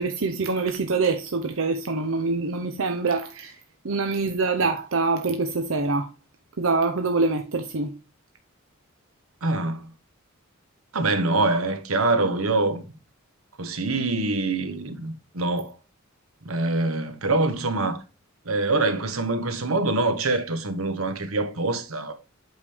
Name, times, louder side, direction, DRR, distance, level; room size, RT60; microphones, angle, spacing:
voice 1, 0.0-3.6 3.8-6.1 6.6-7.9, right 3 dB, 70° right, 0.8 m, -25 dB
voice 2, 9.4-9.9 10.9-12.8 13.6-15.7 16.4-18.0 18.5-22.1, right 2 dB, 90° right, 1.2 m, -25 dB
8.2 x 5.2 x 3.5 m
head